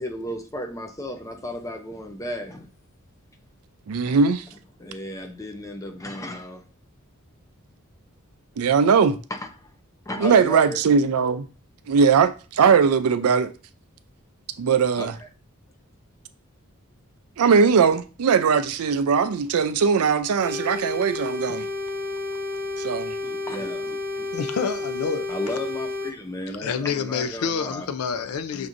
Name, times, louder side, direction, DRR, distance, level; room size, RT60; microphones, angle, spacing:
voice 1, 0.0-2.7 4.1-4.2 4.8-6.6 10.1-10.8 15.0-15.1 23.2-24.3 25.3-27.9 28.2-28.3, left 1 dB, 15° left, 0.5 m, -34 dB
voice 2, 3.9-4.4 8.6-9.2 10.2-11.5 11.9-13.5 14.6-15.2 17.4-21.7 22.8-23.2, right 6 dB, 85° right, 0.4 m, -20 dB
sound 1, 20.4-26.1, left 3 dB, 45° right, 0.7 m, -31 dB
voice 3, 24.3-25.5 26.5-28.7, left 6 dB, 80° left, 0.4 m, -28 dB
5.9 x 2.6 x 2.5 m
head